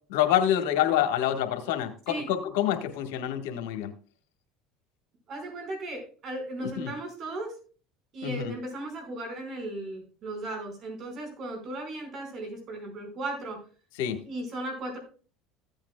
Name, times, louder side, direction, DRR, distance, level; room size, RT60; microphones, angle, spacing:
voice 1, 0.1-3.9 6.8-6.9 8.2-8.5 14.0-14.2, left 11 dB, 80° left, 6 dB, 1.4 m, -27 dB
voice 2, 5.3-7.5 8.1-13.6 14.2-15.0, right 2 dB, 50° right, 4 dB, 5.0 m, -36 dB
15.0 x 8.9 x 2.3 m, 0.38 s
supercardioid pair, 95°, 0 cm